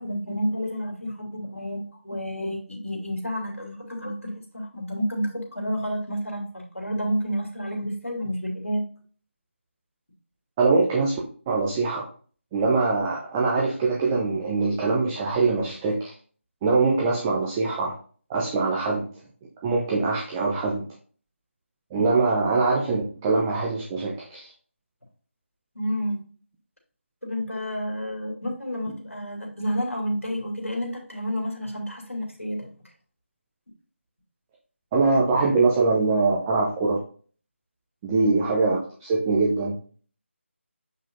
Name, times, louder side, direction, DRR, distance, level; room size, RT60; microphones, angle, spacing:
voice 1, 0.0-8.8 25.7-26.2 27.2-32.7 38.1-38.4, equal, 85° left, 0 dB, 2.6 m, -30 dB
voice 2, 10.6-11.2 11.5-12.1 12.5-16.1 16.6-17.9 18.3-19.1 19.6-20.8 21.9-24.5 34.9-37.0 38.0-39.8, right 3 dB, 10° right, -3 dB, 0.6 m, -23 dB
7.3 x 5.5 x 2.6 m, 0.42 s
figure-of-eight pair, 160°, 7 cm